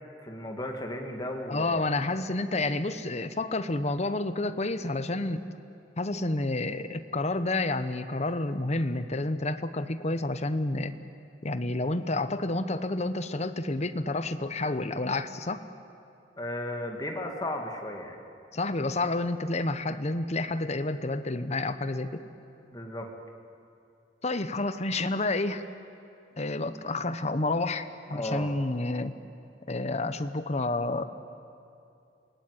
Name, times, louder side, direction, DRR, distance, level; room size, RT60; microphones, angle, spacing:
voice 1, 0.2-1.9 16.4-18.2 22.7-23.1 28.1-28.5, left 1 dB, 20° left, 2 dB, 2.3 m, -35 dB
voice 2, 1.5-5.5 6.0-10.9 11.4-15.6 18.5-22.2 24.2-25.6 26.4-29.2 29.7-31.1, left 2 dB, 35° left, 11 dB, 1.0 m, -29 dB
27.5 x 18.5 x 9.8 m, 2.7 s
head